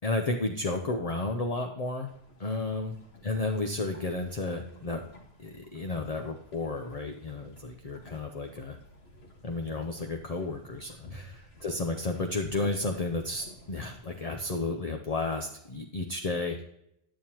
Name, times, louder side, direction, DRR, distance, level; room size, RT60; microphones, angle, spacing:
voice 1, 0.0-2.1 2.4-3.0 3.2-5.0 5.4-8.8 9.4-16.6, left 3 dB, 45° left, 4 dB, 0.7 m, -32 dB
sound 1, 2.1-14.6, left 1 dB, 80° left, 1.8 m, -52 dB
10.5 x 9.2 x 2.9 m, 0.80 s
omnidirectional pair, 1.0 m